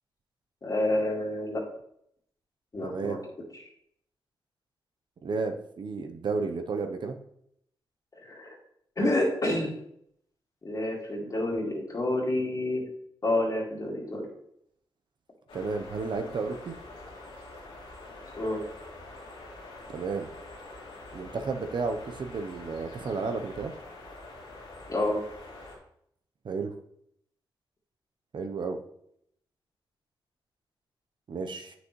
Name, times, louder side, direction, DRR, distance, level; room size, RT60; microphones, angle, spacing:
voice 1, 0.6-1.6 2.7-3.2 8.2-8.5 9.0-9.7 10.6-12.8 13.2-14.2 18.3-18.6 24.9-25.2, left 1 dB, 45° left, -4 dB, 2.1 m, -28 dB
voice 2, 2.8-3.2 5.2-7.2 15.5-16.7 19.9-20.3 21.1-23.7 26.4-26.7 28.3-28.8 31.3-31.7, right 4 dB, 60° right, 6 dB, 0.8 m, -32 dB
sound 1, 15.5-25.8, left 2 dB, 85° left, 2.0 m, -45 dB
8.0 x 6.2 x 3.1 m, 0.73 s
cardioid pair, 65°, 9 cm